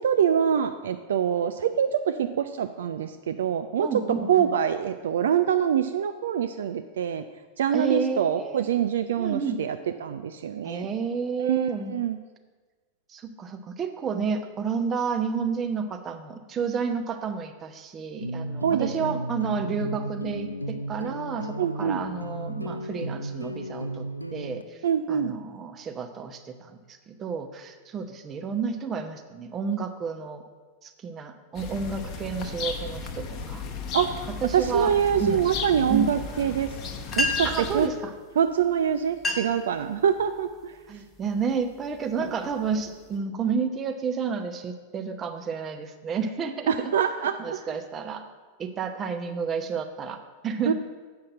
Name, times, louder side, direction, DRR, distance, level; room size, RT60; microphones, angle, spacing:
voice 1, 0.0-3.9 4.3-7.2 7.6-10.9 11.4-12.2 18.6-19.1 21.6-22.0 24.8-25.3 33.9-34.1 34.5-36.7 37.2-37.9 38.4-40.7 46.7-47.6 50.7-50.8, right 8 dB, 60° right, 10 dB, 0.3 m, -25 dB
voice 2, 3.8-4.5 7.7-8.8 9.2-9.6 10.6-11.9 13.1-24.8 25.1-30.4 30.8-33.6 34.4-34.9 35.2-35.5 35.9-36.1 37.4-38.1 40.9-46.9 47.4-48.3 48.6-50.7, right 6 dB, 25° right, 7 dB, 0.8 m, -31 dB
sound 1, 18.2-24.6, right 1 dB, 90° left, 0.4 m, -34 dB
sound 2, 31.5-37.9, left 4 dB, 35° left, 0.9 m, -35 dB
sound 3, 37.1-37.7 38.6-38.7 39.1-39.7 40.2-40.5 41.1-41.4 41.9-43.2, left 2 dB, 15° left, 1.3 m, -30 dB
7.7 x 5.7 x 7.4 m, 1.4 s
figure-of-eight pair, 90°, 0 cm